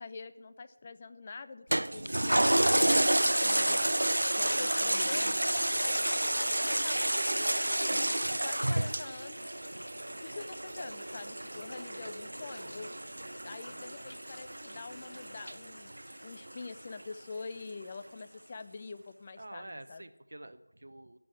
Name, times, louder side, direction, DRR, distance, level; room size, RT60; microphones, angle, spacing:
voice 1, 0.0-5.4 5.8-9.6 10.2-12.9 13.4-15.9 16.2-20.0, left 4 dB, 20° left, 10 dB, 0.4 m, -45 dB
Toilet flush, 1.7-16.5 17.0-17.1, right 1 dB, 80° right, 0.4 m, -30 dB
voice 2, 11.5-12.7 19.4-21.2, right 1 dB, 55° right, 11 dB, 0.8 m, -49 dB
12.0 x 6.2 x 8.5 m, 0.99 s
figure-of-eight pair, 175°, 0 cm